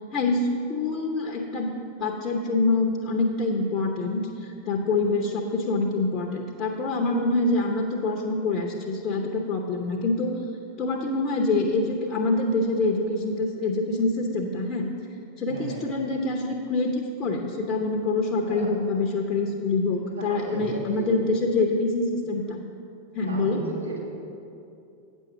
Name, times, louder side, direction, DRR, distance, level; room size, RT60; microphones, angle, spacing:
voice 1, 0.1-1.7 2.0-10.4 10.8-14.9 15.4-22.6 23.1-23.6, left 3 dB, 35° left, 1 dB, 0.8 m, -25 dB
voice 2, 15.5-15.8 18.4-18.7 20.1-21.1 23.2-24.0, right 3 dB, 80° right, -5 dB, 1.8 m, -34 dB
9.2 x 6.3 x 5.8 m, 2.7 s
figure-of-eight pair, 90°, 0 cm